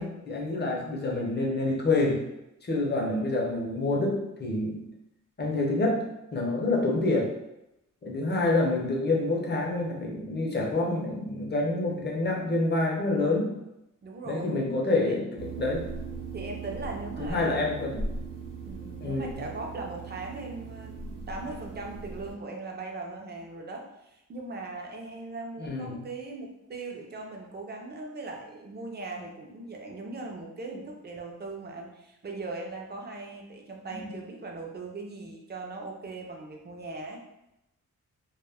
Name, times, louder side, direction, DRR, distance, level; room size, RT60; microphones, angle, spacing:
voice 1, 0.0-2.2 2.7-4.9 5.4-6.1 6.3-7.3 8.0-13.5 14.3-15.9 17.2-18.0 19.0-19.4 25.6-26.0, left 2 dB, 35° left, -1 dB, 0.6 m, -27 dB
voice 2, 8.0-8.4 14.0-14.7 15.1-15.2 16.3-17.8 18.7-37.2, right 3 dB, 30° right, 1 dB, 0.4 m, -39 dB
sound 1, 15.4-22.3, right 4 dB, 65° right, 0.7 m, -39 dB
2.2 x 2.1 x 3.3 m, 0.90 s
wide cardioid pair, 120°, 32 cm